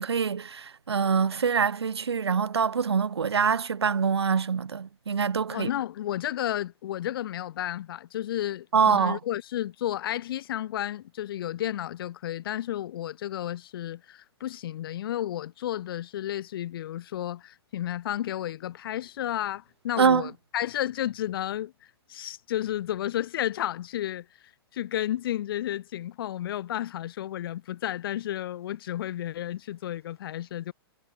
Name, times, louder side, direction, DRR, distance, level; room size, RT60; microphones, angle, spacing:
voice 1, 0.0-5.7 8.7-9.2 20.0-20.3, right 6 dB, 90° right, 1.0 m, -25 dB
voice 2, 5.5-21.7 22.1-24.3 24.7-30.7, left 12 dB, 60° left, 4.1 m, -32 dB
hypercardioid pair, 120°, 13 cm